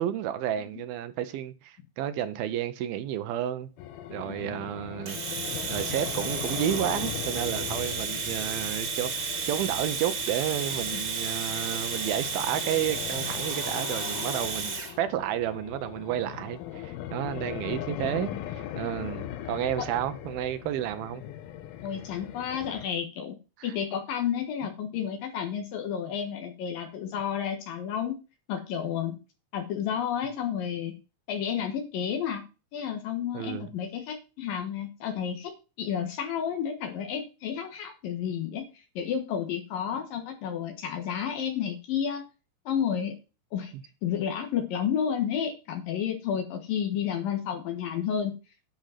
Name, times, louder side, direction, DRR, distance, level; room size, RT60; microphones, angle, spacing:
voice 1, 0.0-3.7 4.1-5.2 5.7-21.2 23.6-23.7 33.3-33.7, right 11 dB, 80° right, 2.6 m, -31 dB
sound 1, 3.8-22.9, left 11 dB, 85° left, 2.8 m, -39 dB
voice 2, 4.3-4.6 10.9-11.0 18.0-18.4 19.8-19.9 21.8-23.4 23.6-28.1 28.5-29.2 29.5-30.9 31.3-32.4 32.7-35.5 35.8-38.6 39.0-42.2 42.7-43.2 43.5-43.7 44.0-48.4, left 8 dB, 70° left, 3.0 m, -31 dB
Domestic sounds home sounds, 5.1-14.9, right 5 dB, 40° right, 2.0 m, -32 dB
10.5 x 5.3 x 5.7 m
omnidirectional pair, 4.3 m